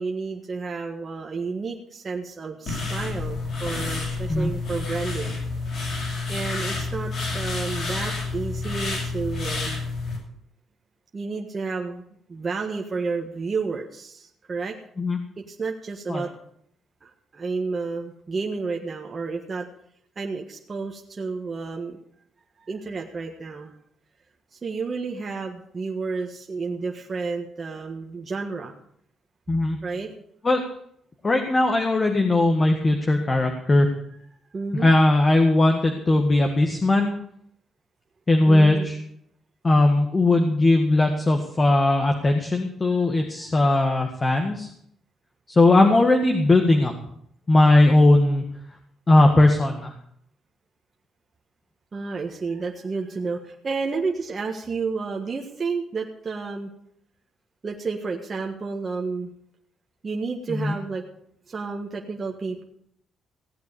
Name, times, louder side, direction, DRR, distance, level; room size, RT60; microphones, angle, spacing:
voice 1, 0.0-5.4 6.3-9.9 11.1-12.0 12.3-14.8 15.4-16.3 17.0-19.7 20.1-22.0 22.6-23.7 24.5-28.7 29.8-30.1 34.5-34.9 38.5-38.9 43.3-44.0 51.9-56.7 57.6-59.3 60.0-61.0 61.5-62.6, right 4 dB, 35° right, 1 dB, 1.6 m, -31 dB
sound 1, 2.7-10.2, left 3 dB, 60° left, 7.1 m, -29 dB
voice 2, 31.2-33.9 34.7-37.1 38.3-39.0 39.6-44.7 45.5-46.9 47.5-48.4 49.1-49.9 60.5-60.7, left 2 dB, 30° left, 4 dB, 1.7 m, -19 dB
16.5 x 8.3 x 6.9 m, 0.69 s
cardioid pair, 90°, 0 cm